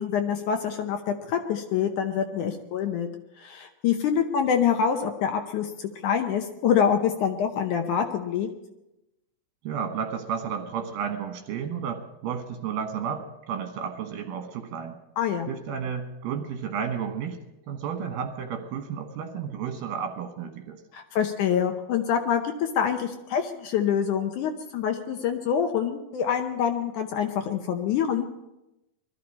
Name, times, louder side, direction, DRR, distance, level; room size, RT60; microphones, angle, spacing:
voice 1, 0.0-3.1 3.4-8.5 15.2-15.5 20.9-28.3, left 8 dB, 75° left, 5 dB, 1.9 m, -26 dB
voice 2, 9.6-15.0 15.5-17.4 17.7-20.8, right 7 dB, 75° right, 5 dB, 3.0 m, -32 dB
21.5 x 13.5 x 4.2 m, 0.93 s
omnidirectional pair, 4.3 m